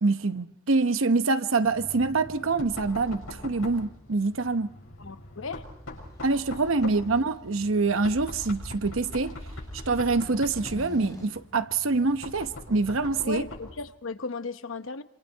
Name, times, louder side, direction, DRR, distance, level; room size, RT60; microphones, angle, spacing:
voice 1, 0.0-4.7 6.2-9.4 9.9-13.4, right 3 dB, 70° right, 0.9 m, -25 dB
Knock, 1.6-13.8, left 1 dB, 85° left, 6.7 m, -42 dB
voice 2, 5.0-5.6 13.2-15.0, left 4 dB, 70° left, 0.9 m, -36 dB
sound 1, 5.9-11.2, equal, 15° left, 3.7 m, -48 dB
27.0 x 27.0 x 4.6 m
head